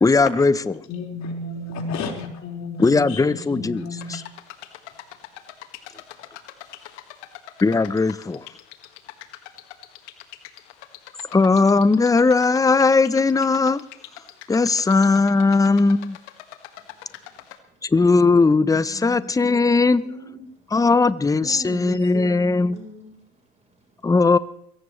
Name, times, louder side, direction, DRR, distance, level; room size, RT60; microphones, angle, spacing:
voice 1, 0.0-0.6 2.8-4.2 7.6-8.5 11.3-13.8 14.5-16.2 17.8-20.0 20.7-22.8 24.0-24.4, left 3 dB, 10° left, 17 dB, 0.7 m, -18 dB
voice 2, 0.9-4.2, left 3 dB, 50° left, 0 dB, 4.8 m, -32 dB
sound 1, 4.0-17.6, left 13 dB, 75° left, 1.9 m, -43 dB
voice 3, 18.6-20.6 21.4-24.0, right 2 dB, 20° right, 2 dB, 4.2 m, -40 dB
22.0 x 18.0 x 3.2 m, 0.74 s
hypercardioid pair, 75°, 35 cm